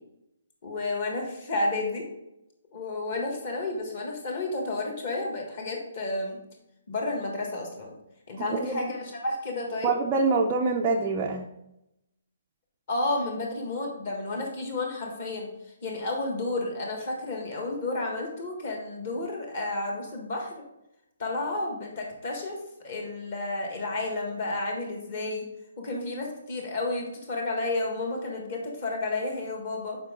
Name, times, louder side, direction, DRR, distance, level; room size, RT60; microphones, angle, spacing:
voice 1, 0.6-2.1 2.7-6.4 6.9-7.9 8.3-9.9 12.9-15.5 15.8-20.6 21.2-22.6 22.8-25.5 25.8-30.0, left 2 dB, 30° left, 0 dB, 1.6 m, -31 dB
voice 2, 8.5-8.9 9.8-11.5, right 3 dB, 15° right, -1 dB, 0.4 m, -25 dB
7.4 x 5.1 x 3.7 m, 0.86 s
hypercardioid pair, 180°, 0 cm